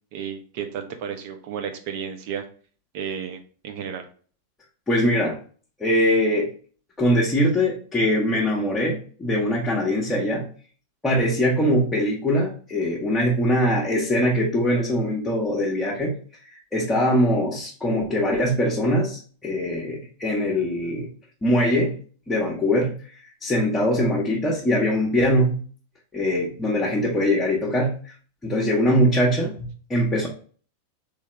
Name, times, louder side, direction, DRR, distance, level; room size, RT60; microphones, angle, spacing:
voice 1, 0.1-2.4 2.9-4.0, right 7 dB, 50° right, 6 dB, 0.8 m, -32 dB
voice 2, 4.9-5.4 5.8-6.5 7.0-10.5 11.0-16.1 16.5-21.1 21.4-22.0 22.3-22.9 23.4-25.6 26.1-27.9 28.4-30.3, equal, 15° left, -5 dB, 1.1 m, -22 dB
3.5 x 3.3 x 3.1 m, 0.42 s
figure-of-eight pair, 90°, 0 cm